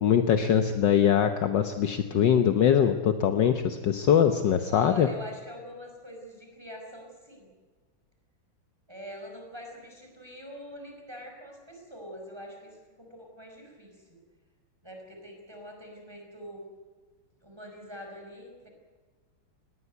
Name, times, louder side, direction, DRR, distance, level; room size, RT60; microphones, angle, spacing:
voice 1, 0.0-5.1, left 8 dB, 65° left, 8 dB, 1.6 m, -22 dB
voice 2, 4.7-7.5 8.9-14.2 14.8-16.6 17.4-18.7, equal, 10° right, 1 dB, 5.2 m, -43 dB
19.5 x 18.5 x 9.3 m, 1.4 s
omnidirectional pair, 2.2 m